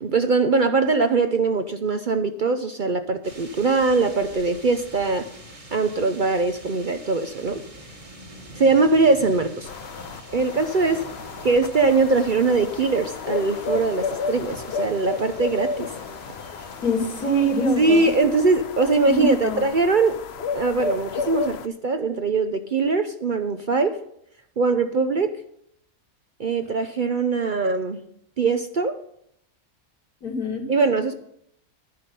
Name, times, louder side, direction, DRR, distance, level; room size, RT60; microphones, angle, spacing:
voice 1, 0.0-5.3 5.7-7.6 8.6-9.7 10.3-11.1 11.4-15.9 17.8-20.2 20.5-24.0 24.6-25.4 26.4-28.0 28.4-29.0 30.7-31.1, right 3 dB, 50° right, 8 dB, 0.6 m, -21 dB
sound 1, 3.2-18.2, right 1 dB, 25° right, 1.5 m, -45 dB
sound 2, 9.6-21.7, left 4 dB, 55° left, 0.8 m, -32 dB
voice 2, 16.8-18.1 19.0-19.6 30.2-30.6, right 1 dB, 85° left, 1 dB, 2.9 m, -23 dB
11.5 x 11.0 x 5.4 m, 0.71 s
omnidirectional pair, 1.5 m